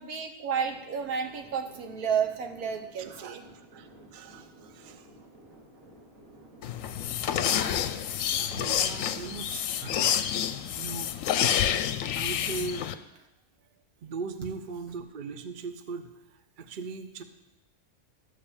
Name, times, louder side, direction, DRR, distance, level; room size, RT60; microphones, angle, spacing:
voice 1, 0.0-3.4, right 7 dB, 90° right, 5 dB, 1.5 m, -31 dB
sound 1, 0.6-8.9, right 1 dB, 65° right, 3.0 m, -54 dB
voice 2, 3.0-5.1 7.9-8.0 8.3-10.2 10.7-11.1 12.1-12.9 14.0-17.2, right 4 dB, 45° right, 9 dB, 0.7 m, -39 dB
sound 2, 6.6-12.9, left 10 dB, 70° left, 0.9 m, -28 dB
13.0 x 5.0 x 7.1 m, 0.93 s
omnidirectional pair, 1.5 m